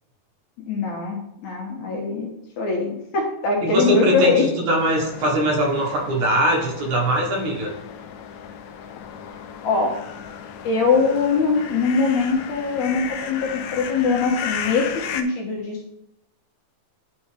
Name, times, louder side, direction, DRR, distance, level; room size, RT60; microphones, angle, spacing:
voice 1, 0.7-4.5 9.6-9.9 10.6-15.9, left 4 dB, 70° left, -1 dB, 2.3 m, -22 dB
voice 2, 3.6-7.7, right 1 dB, 65° right, -1 dB, 2.5 m, -21 dB
sound 1, 4.8-15.2, left 8 dB, 85° left, 1.6 m, -35 dB
10.5 x 4.2 x 3.2 m, 0.83 s
omnidirectional pair, 3.8 m